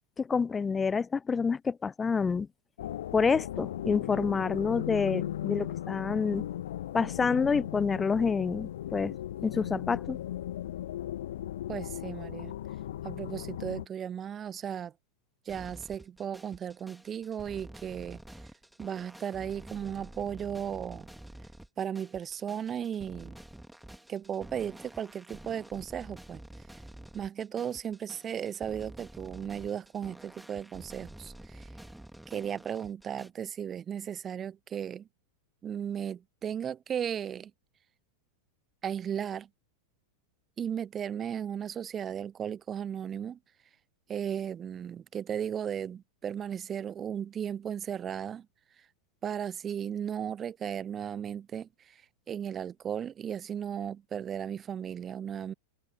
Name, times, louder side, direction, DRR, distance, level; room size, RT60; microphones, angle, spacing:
voice 1, 0.2-2.5 3.1-6.5 6.9-9.2 9.4-10.2, left 5 dB, 15° left, 0.5 m, -28 dB
sound 1, 2.8-13.9, left 12 dB, 60° left, 1.5 m, -37 dB
voice 2, 11.7-12.5 13.0-14.9 15.5-18.2 18.8-21.1 21.8-23.3 24.1-26.4 27.1-31.7 32.3-35.1 35.6-37.5 38.8-39.5 40.6-43.4 44.1-48.5 49.2-52.0 52.3-55.5, right 8 dB, 25° right, 0.9 m, -35 dB
sound 2, 15.5-33.3, right 1 dB, 5° right, 2.7 m, -49 dB
figure-of-eight pair, 90°, 0 cm